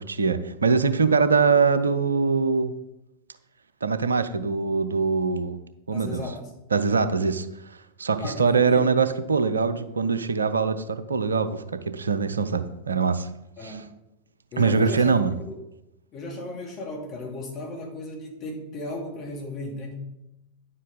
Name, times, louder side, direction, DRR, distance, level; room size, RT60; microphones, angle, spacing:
voice 1, 0.0-2.7 3.8-5.6 5.9-6.2 6.7-13.3 13.6-13.8 14.6-15.3, right 5 dB, 75° right, 12 dB, 0.6 m, -23 dB
voice 2, 5.9-6.5 8.2-9.0 13.6-13.9 14.5-15.2 15.4-15.5 16.1-20.0, left 2 dB, 35° left, -1 dB, 2.6 m, -35 dB
10.0 x 7.5 x 4.0 m, 0.88 s
figure-of-eight pair, 90°, 0 cm